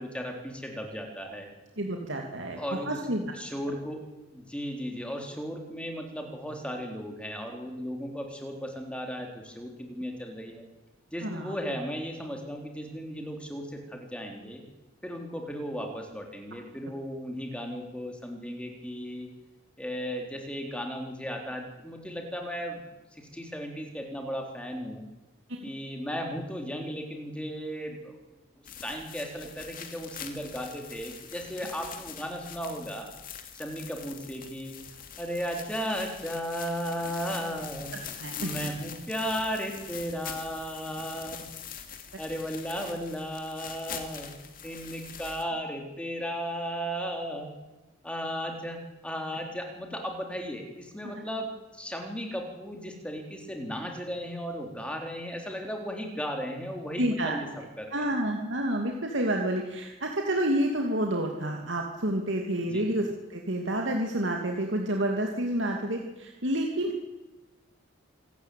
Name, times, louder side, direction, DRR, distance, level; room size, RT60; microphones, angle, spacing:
voice 1, 0.0-1.5 2.6-3.0 3.3-4.0 4.3-10.7 11.1-14.6 15.0-19.3 19.8-22.8 23.1-25.0 25.6-28.2 28.8-33.1 33.5-34.8 35.2-38.0 38.4-41.4 42.2-44.3 44.6-47.6 48.0-57.5 57.8-58.1 62.6-62.8, equal, 5° left, 2 dB, 3.8 m, -35 dB
voice 2, 1.8-3.3 11.2-11.6 25.5-25.7 38.2-38.5 57.0-57.4 57.9-66.9, right 1 dB, 70° right, 1 dB, 2.7 m, -29 dB
sound 1, 28.6-45.4, left 8 dB, 45° left, 2.5 m, -43 dB
26.5 x 13.5 x 9.3 m, 1.1 s
head